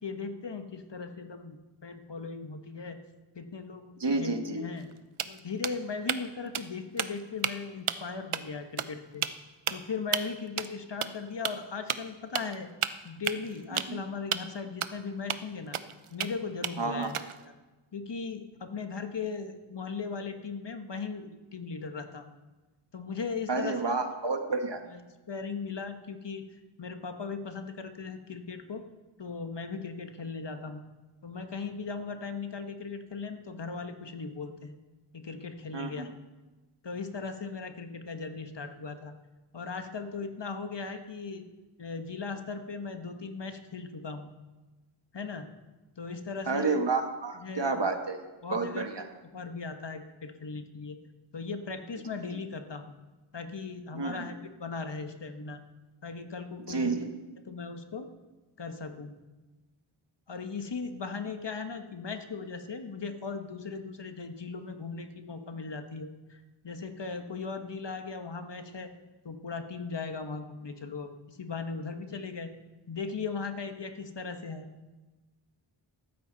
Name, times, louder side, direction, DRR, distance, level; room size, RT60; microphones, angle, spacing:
voice 1, 0.0-3.0 3.3-4.9 5.3-9.2 9.7-12.7 13.0-15.8 16.1-17.5 17.9-22.3 22.9-24.0 24.9-26.4 26.8-28.8 29.2-30.8 31.2-34.8 35.1-36.1 36.8-39.1 39.5-41.4 41.8-44.3 45.1-45.5 46.0-46.8 47.3-47.8 48.4-49.0 49.3-51.0 51.3-52.9 53.3-55.6 56.0-57.0 57.5-58.1 58.6-59.1 60.3-68.9 69.2-72.5 72.9-74.7, left 4 dB, 55° left, 7 dB, 1.3 m, -38 dB
voice 2, 4.0-4.6 13.7-14.0 16.8-17.1 23.5-24.8 35.7-36.1 46.5-48.2 48.5-49.0 53.9-54.3 56.7-57.1, right 3 dB, 55° right, 5 dB, 1.6 m, -30 dB
sound 1, 4.8-4.9 5.2-6.3 6.5-6.7 7.0-7.5 7.9-8.1 8.3-8.4 8.8-8.9 9.2-9.3 9.7-9.8 10.1-10.2 10.6-10.7 11.0-11.1 11.4-11.5 11.9-12.0 12.3-12.5 12.8-14.0 14.3-14.4 14.8-14.9 15.3-15.4 15.7-16.3 16.6-17.4, right 9 dB, 80° right, 0.7 m, -31 dB
14.5 x 13.0 x 4.0 m, 1.2 s
wide cardioid pair, 55°, 49 cm